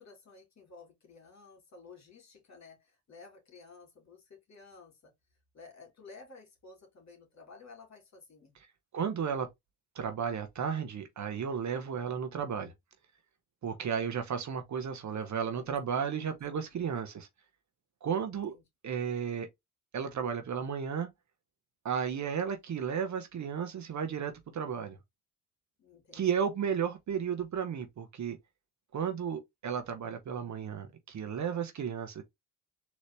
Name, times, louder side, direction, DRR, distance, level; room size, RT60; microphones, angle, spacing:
voice 1, 0.0-5.1 5.5-8.5 15.2-16.2 18.3-18.6 25.8-26.5, left 4 dB, 45° left, 2.5 m, -54 dB
voice 2, 8.9-9.5 9.9-12.7 13.6-17.3 18.0-18.5 18.8-19.5 19.9-21.1 21.8-25.0 26.1-28.4 28.9-32.2, right 7 dB, 45° right, 1.1 m, -33 dB
4.0 x 3.1 x 3.3 m
hypercardioid pair, 55°, 40 cm